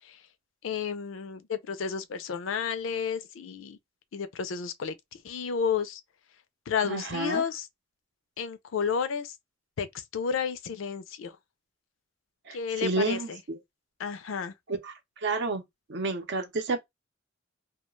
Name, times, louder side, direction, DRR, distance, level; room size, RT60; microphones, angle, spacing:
voice 1, 0.6-3.8 4.1-4.9 5.2-6.0 6.7-7.7 8.4-9.3 9.8-9.9 10.1-11.3 12.5-13.4 14.0-14.5, left 6 dB, 70° left, 0.4 m, -31 dB
voice 2, 6.9-7.4 12.5-13.6 14.7-15.6 15.9-16.8, right 3 dB, 60° right, 0.6 m, -30 dB
2.3 x 2.1 x 3.0 m
head